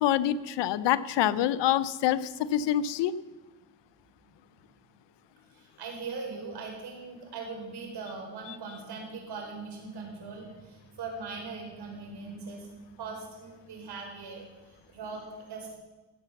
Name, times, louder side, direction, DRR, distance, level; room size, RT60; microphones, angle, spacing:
voice 1, 0.0-2.2 2.5-3.1, left 11 dB, 80° left, 16 dB, 0.7 m, -26 dB
voice 2, 5.5-15.8, right 4 dB, 65° right, 1 dB, 4.8 m, -40 dB
16.0 x 8.1 x 7.1 m, 1.2 s
cardioid pair, 90°, 42 cm